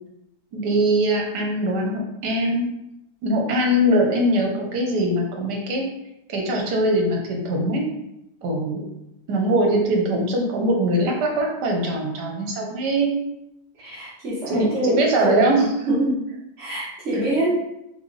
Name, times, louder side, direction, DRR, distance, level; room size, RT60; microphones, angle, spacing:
voice 1, 0.5-2.7 3.2-5.9 6.3-7.8 8.4-8.8 9.3-13.1 14.5-15.7 17.1-17.2, right 1 dB, 75° right, 1 dB, 1.4 m, -22 dB
voice 2, 13.8-15.3 15.9-16.2 16.6-17.5, right 1 dB, 50° right, -8 dB, 1.1 m, -25 dB
4.2 x 2.9 x 3.1 m, 0.86 s
omnidirectional pair, 1.8 m